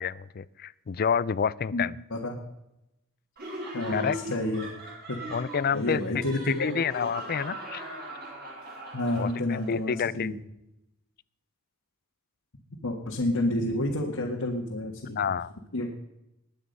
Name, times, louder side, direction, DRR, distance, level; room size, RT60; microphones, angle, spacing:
voice 1, 0.0-1.9 3.9-4.2 5.3-6.0 6.5-7.8 9.2-10.3 15.2-15.5, left 6 dB, 45° left, 20 dB, 0.4 m, -29 dB
voice 2, 1.7-2.4 3.7-4.7 5.1-5.2 5.7-6.8 8.9-10.3 12.8-15.2 15.7-15.9, left 1 dB, 80° left, -1 dB, 1.8 m, -29 dB
Laughter, 3.4-9.7, right 1 dB, 45° right, 4.9 m, -39 dB
21.0 x 8.7 x 5.4 m, 0.88 s
head